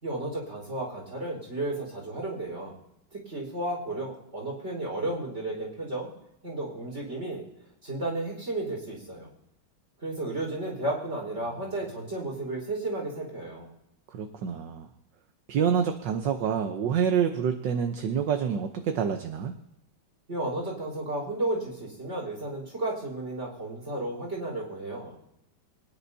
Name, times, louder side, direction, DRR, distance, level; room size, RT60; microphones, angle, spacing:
voice 1, 0.0-2.8 3.1-6.1 6.4-7.4 7.8-9.3 10.0-13.7 20.3-25.2, right 2 dB, 30° right, -2 dB, 5.0 m, -33 dB
voice 2, 14.1-14.9 15.5-19.5, right 7 dB, 70° right, 6 dB, 1.5 m, -27 dB
24.5 x 10.0 x 2.8 m, 0.84 s
omnidirectional pair, 2.2 m